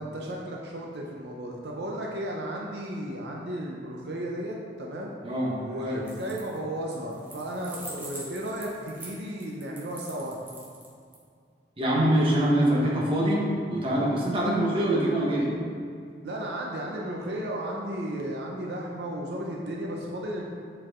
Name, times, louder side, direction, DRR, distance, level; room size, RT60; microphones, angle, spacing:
voice 1, 0.0-5.1 5.6-10.4 16.2-20.4, right 1 dB, 75° right, -2 dB, 0.7 m, -34 dB
voice 2, 5.2-6.0 11.8-15.5, right 1 dB, 30° right, -5 dB, 1.3 m, -24 dB
sound 1, 6.0-6.6 6.9-11.2, right 1 dB, 10° right, 1.2 m, -43 dB
7.5 x 4.6 x 3.7 m, 2.3 s
head